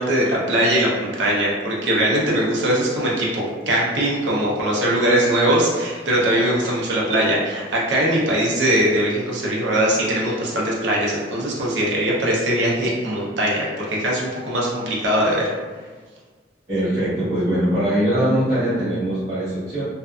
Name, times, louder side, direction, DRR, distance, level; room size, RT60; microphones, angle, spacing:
voice 1, 0.0-15.5, right 1 dB, 70° right, -4 dB, 0.6 m, -21 dB
voice 2, 16.7-19.8, right 1 dB, 35° right, -15 dB, 1.2 m, -21 dB
2.5 x 2.4 x 2.3 m, 1.4 s
head